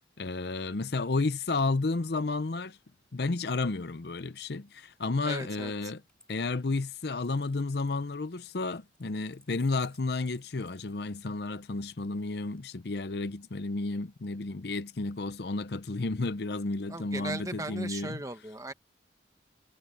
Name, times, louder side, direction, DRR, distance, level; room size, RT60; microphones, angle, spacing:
voice 1, 0.2-2.8 3.1-6.0 6.3-18.2, left 3 dB, 60° left, 0.7 m, -32 dB
voice 2, 5.2-5.7 16.9-18.7, right 2 dB, 20° right, 1.4 m, -37 dB
Coin (dropping), 6.1-11.5 12.6-13.3, left 2 dB, 5° left, 5.5 m, -62 dB
head